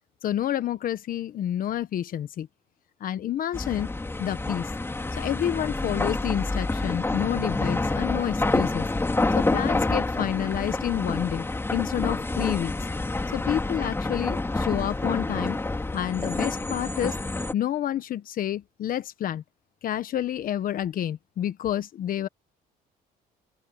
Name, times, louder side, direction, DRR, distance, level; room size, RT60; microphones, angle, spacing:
voice 1, 0.2-2.5 3.0-3.9 4.2-4.7 5.1-8.9 9.3-11.5 11.7-12.7 13.3-15.6 15.9-17.2 17.5-19.4 19.8-22.3, left 11 dB, 55° left, 1.2 m, -29 dB
sound 1, 3.5-17.5, left 2 dB, 15° left, 3.2 m, -28 dB
open air
cardioid pair, 110°, 17 cm